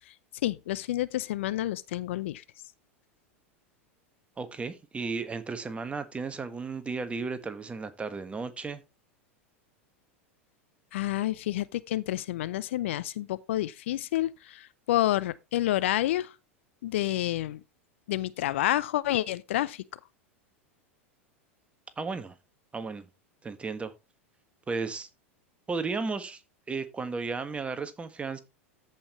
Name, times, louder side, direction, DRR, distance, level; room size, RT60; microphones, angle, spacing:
voice 1, 0.4-2.4 10.9-16.3 16.8-17.6 18.1-19.8, left 14 dB, 65° left, 0.5 m, -29 dB
voice 2, 4.4-8.8 22.0-22.3 22.7-23.1 23.4-23.9 24.7-25.1 25.7-26.4 26.7-28.4, right 4 dB, 15° right, 1.4 m, -34 dB
14.0 x 5.4 x 3.1 m
figure-of-eight pair, 90°, 7 cm